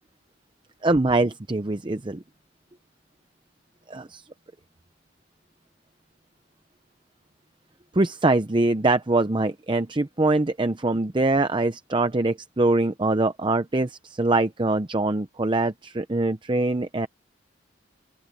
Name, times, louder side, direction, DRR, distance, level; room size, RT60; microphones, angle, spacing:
voice 1, 0.8-2.2 3.9-4.2 7.9-17.1, right 2 dB, 25° right, 0.7 m, -23 dB
open air
head